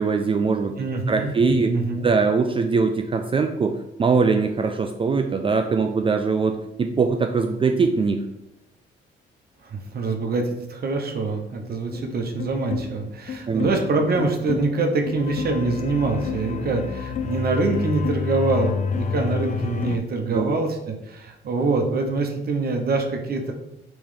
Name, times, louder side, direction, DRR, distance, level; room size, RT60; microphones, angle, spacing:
voice 1, 0.0-0.7 1.1-1.7 2.0-8.2 13.5-13.7 20.3-20.6, right 4 dB, 25° right, 5 dB, 0.3 m, -22 dB
voice 2, 0.8-2.1 9.6-23.5, right 3 dB, 50° right, 3 dB, 0.7 m, -25 dB
sound 1, 11.9-20.0, left 5 dB, 40° left, 0.5 m, -29 dB
3.5 x 3.1 x 4.9 m, 0.88 s
cardioid pair, 90°, 20 cm